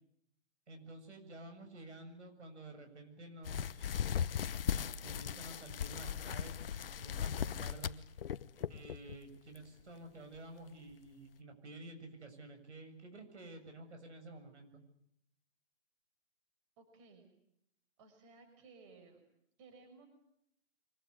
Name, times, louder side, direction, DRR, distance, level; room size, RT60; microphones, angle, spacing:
voice 1, 0.7-3.9 4.6-8.0 8.7-14.8, right 2 dB, 90° right, 6 dB, 7.4 m, -51 dB
sound 1, 3.4-9.2 9.6-9.8 10.4-10.5 10.9-11.0, left 8 dB, 55° left, 1.0 m, -38 dB
voice 2, 16.8-17.3 18.0-19.2 19.6-20.1, right 4 dB, 25° right, 6 dB, 6.1 m, -58 dB
24.5 x 20.5 x 9.9 m, 0.75 s
hypercardioid pair, 165°, 34 cm